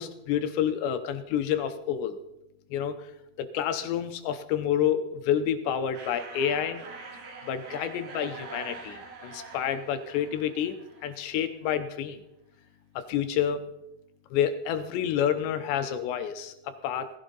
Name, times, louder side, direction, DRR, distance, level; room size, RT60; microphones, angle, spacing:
voice 1, 0.0-2.2 2.7-3.1 3.4-6.8 7.5-10.8 11.0-12.2 13.0-13.6 14.3-17.1, left 9 dB, 80° left, 9 dB, 2.7 m, -29 dB
sound 1, 5.9-11.5, right 4 dB, 55° right, 3.6 m, -44 dB
19.5 x 15.0 x 4.0 m, 0.86 s
omnidirectional pair, 5.6 m